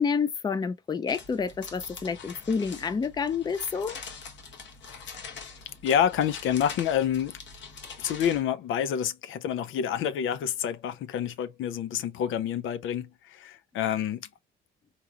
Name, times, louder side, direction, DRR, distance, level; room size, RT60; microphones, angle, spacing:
voice 1, 0.0-4.0, left 5 dB, 20° left, 0.4 m, -29 dB
sound 1, 1.1-8.4, left 5 dB, 60° left, 1.1 m, -44 dB
voice 2, 5.8-7.4 8.0-14.3, left 9 dB, 75° left, 0.4 m, -28 dB
3.8 x 2.9 x 2.2 m
cardioid pair, 115°, 21 cm